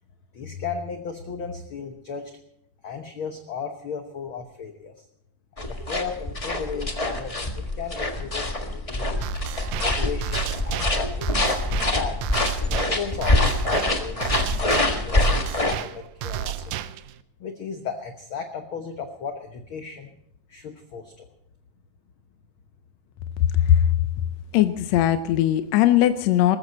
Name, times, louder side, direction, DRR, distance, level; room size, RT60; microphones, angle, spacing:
voice 1, 0.3-2.3 2.8-5.1 5.6-9.2 9.8-12.2 12.7-16.7 17.4-20.1 20.5-21.3, left 6 dB, 60° left, 5 dB, 1.5 m, -35 dB
sound 1, 5.6-15.7, left 2 dB, 25° left, 0.7 m, -25 dB
sound 2, 9.2-17.2, right 11 dB, 75° right, 2.0 m, -33 dB
voice 2, 24.5-26.6, left 12 dB, 75° left, 10 dB, 1.7 m, -19 dB
20.0 x 14.5 x 4.2 m, 0.72 s
omnidirectional pair, 3.5 m